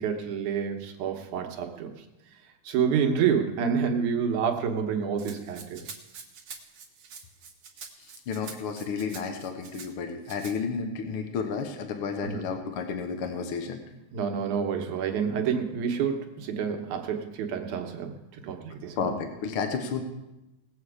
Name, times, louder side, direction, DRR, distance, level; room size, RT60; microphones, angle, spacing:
voice 1, 0.0-1.9 2.6-5.9 12.2-12.4 14.1-19.1, right 7 dB, 85° right, 3 dB, 2.6 m, -28 dB
Rattle (instrument), 5.2-9.9 10.3-10.6, right 6 dB, 55° right, 2.1 m, -45 dB
voice 2, 8.0-13.8 19.0-20.0, left 5 dB, 60° left, 5 dB, 1.5 m, -32 dB
19.5 x 7.9 x 4.9 m, 0.95 s
omnidirectional pair, 3.4 m